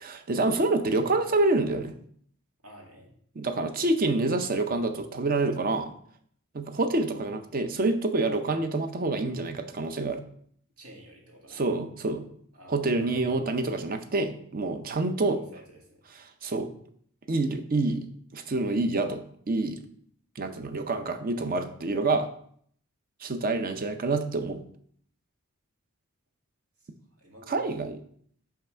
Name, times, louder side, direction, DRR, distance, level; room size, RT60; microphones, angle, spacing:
voice 1, 0.0-1.9 3.4-5.9 6.5-10.2 11.5-12.2 12.7-15.4 16.4-16.7 17.3-18.0 18.3-19.8 20.4-22.3 23.2-24.6 27.5-28.0, right 2 dB, 40° right, 9 dB, 0.6 m, -27 dB
voice 2, 2.6-3.1 10.8-11.7 12.5-13.6 15.3-16.0 26.8-26.9 27.2-27.8, right 1 dB, 80° right, -1 dB, 2.1 m, -50 dB
5.8 x 5.8 x 4.3 m, 0.62 s
head